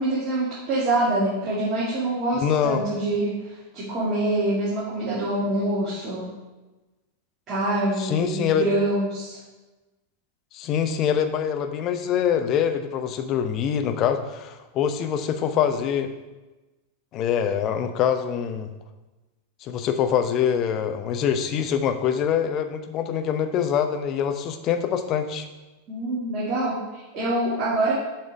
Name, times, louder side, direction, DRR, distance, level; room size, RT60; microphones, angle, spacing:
voice 1, 0.0-6.3 7.5-9.4 25.9-27.9, right 2 dB, 30° right, -8 dB, 2.3 m, -25 dB
voice 2, 2.4-2.8 8.0-8.6 10.5-16.1 17.1-18.7 19.6-25.5, left 8 dB, 35° left, 7 dB, 0.8 m, -24 dB
7.2 x 5.3 x 5.2 m, 1.1 s
figure-of-eight pair, 90°, 0 cm